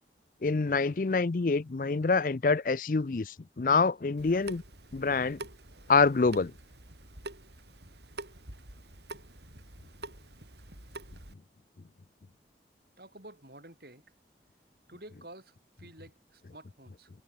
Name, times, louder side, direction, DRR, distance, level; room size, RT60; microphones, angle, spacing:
voice 1, 0.4-4.6 4.9-5.4 5.9-6.5, left 4 dB, 50° left, 0.5 m, -26 dB
Water tap faucet / Sink (filling or washing) / Drip, 4.2-11.3, right 2 dB, 75° right, 7.4 m, -46 dB
voice 2, 13.0-14.0 14.9-17.1, right 1 dB, 60° right, 7.2 m, -51 dB
head